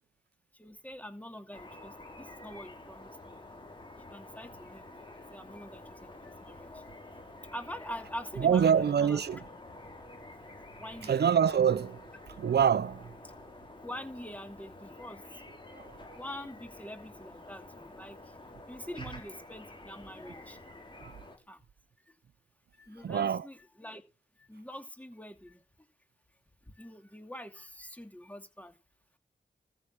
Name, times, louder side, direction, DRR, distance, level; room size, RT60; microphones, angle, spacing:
voice 1, 0.5-3.4 4.1-6.8 7.5-9.4 10.8-11.2 13.8-15.4 16.1-18.4 18.7-20.7 21.5-21.7 22.1-22.2 22.7-24.0 24.4-25.9 26.6-28.8, equal, 10° left, 2.6 m, -45 dB
sound 1, 1.5-21.4, left 2 dB, 30° left, 5.0 m, -49 dB
voice 2, 8.4-9.4 11.0-12.1 12.4-13.1 15.7-16.0 21.0-21.1 23.0-23.5, right 8 dB, 70° right, 0.6 m, -26 dB
14.0 x 6.2 x 6.5 m
cardioid pair, 55°, 17 cm